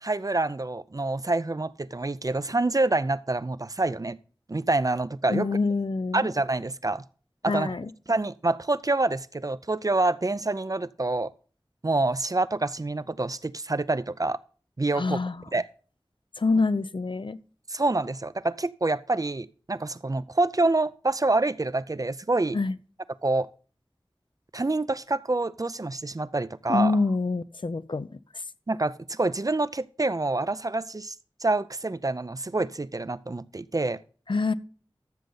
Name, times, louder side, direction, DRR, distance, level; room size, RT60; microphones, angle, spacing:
voice 1, 0.0-4.2 4.5-5.5 6.1-7.0 7.4-7.7 8.1-11.3 11.8-14.4 14.8-15.2 15.5-15.6 17.7-22.6 23.2-23.5 24.5-26.9 28.7-31.1 31.4-34.0, right 2 dB, 40° right, 0.4 m, -27 dB
voice 2, 5.3-6.3 7.4-7.9 14.9-15.5 16.4-17.4 22.5-22.8 26.7-28.4 34.3-34.5, left 3 dB, 65° left, 0.4 m, -26 dB
13.0 x 6.6 x 3.9 m
wide cardioid pair, 40°, 9 cm